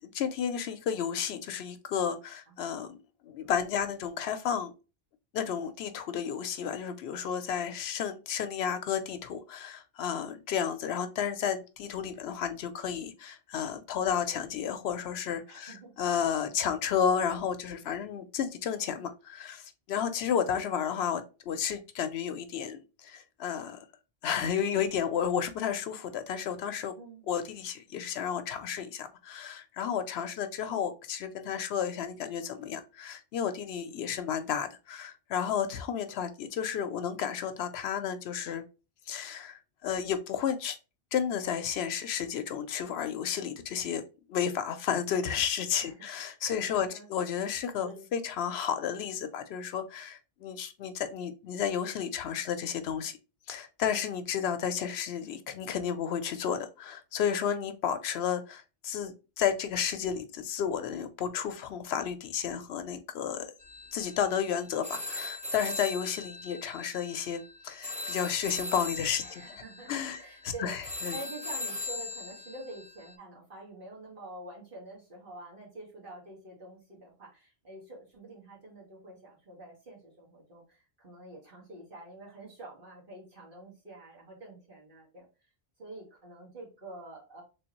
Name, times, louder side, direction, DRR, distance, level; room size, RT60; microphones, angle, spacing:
voice 1, 0.1-3.0 3.2-4.7 5.3-23.9 24.2-26.9 27.3-38.6 39.1-40.8 41.1-44.0 44.3-53.2 53.5-59.1 59.4-63.5 63.9-69.4 69.9-70.2 70.4-71.2, left 8 dB, 80° left, 0.8 m, -32 dB
voice 2, 15.5-15.9 27.0-27.3 45.8-46.0 46.4-47.1 47.8-48.0 69.2-70.7 71.1-85.3 85.8-87.4, right 2 dB, 55° right, 2.0 m, -47 dB
sound 1, 63.6-73.1, left 2 dB, 10° right, 0.4 m, -40 dB
3.4 x 3.3 x 2.9 m
omnidirectional pair, 1.1 m